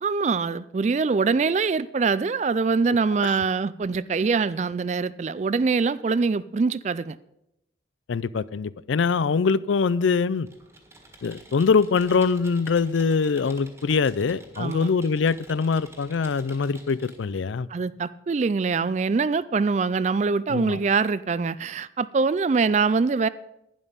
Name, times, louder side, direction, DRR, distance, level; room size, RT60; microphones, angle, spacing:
voice 1, 0.0-7.2 14.6-14.9 17.7-23.3, right 4 dB, 40° right, 0.3 m, -24 dB
voice 2, 8.1-10.5 11.2-17.7 20.5-20.8, left 5 dB, 85° left, 0.4 m, -23 dB
Computer keyboard, 10.4-17.3, right 1 dB, 15° right, 1.6 m, -49 dB
11.0 x 10.5 x 5.2 m
head